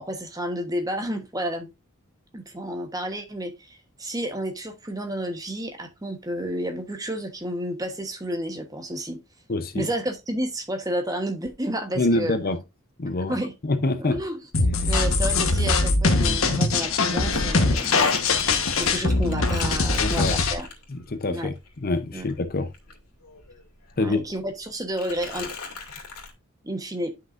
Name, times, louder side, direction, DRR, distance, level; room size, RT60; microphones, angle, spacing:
voice 1, 0.0-1.7 2.3-9.2 9.7-12.4 13.3-13.5 14.0-14.4 14.9-18.1 18.8-20.7 21.3-21.5 22.1-22.3 24.0-25.5 26.6-27.1, right 1 dB, 15° right, 1.1 m, -31 dB
voice 2, 9.5-9.9 12.0-12.6 13.0-13.4 13.6-14.2 20.0-20.3 20.9-21.5 21.8-22.7 24.0-24.2, left 2 dB, 40° left, 0.7 m, -25 dB
sound 1, 14.5-20.5, left 3 dB, 60° left, 1.2 m, -22 dB
Crumpling crinkling, 16.8-21.1 21.5-23.6 23.9-24.6 25.0-26.3, left 5 dB, 85° left, 2.3 m, -38 dB
10.0 x 5.9 x 2.5 m
head